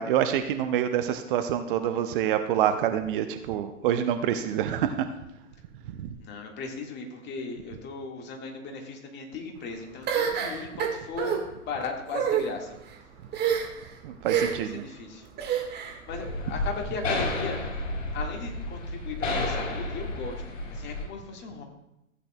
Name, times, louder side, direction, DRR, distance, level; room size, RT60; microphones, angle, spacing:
voice 1, 0.0-5.1 5.9-6.1 14.0-14.8 16.5-16.6, right 10 dB, 40° right, 8 dB, 0.7 m, -27 dB
voice 2, 6.2-12.7 14.5-15.3 16.1-17.6 18.1-21.6, left 4 dB, 25° left, 2 dB, 1.7 m, -37 dB
sound 1, 10.1-11.4 12.1-12.4 13.3-13.8 14.3-14.7 15.4-16.0, right 8 dB, 25° right, 1.6 m, -27 dB
sound 2, 16.1-21.0, left 2 dB, 70° left, 4.2 m, -31 dB
15.0 x 8.6 x 2.2 m, 0.86 s
figure-of-eight pair, 110°, 39 cm